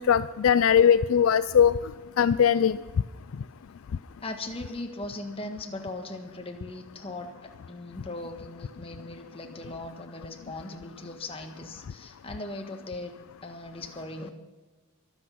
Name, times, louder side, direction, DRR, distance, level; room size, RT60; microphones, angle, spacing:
voice 1, 0.0-1.7 2.2-2.8, left 8 dB, 65° left, 14 dB, 0.4 m, -20 dB
voice 2, 4.2-13.1 13.4-14.3, left 2 dB, 25° left, 4 dB, 1.5 m, -39 dB
23.5 x 8.5 x 5.8 m, 1.2 s
head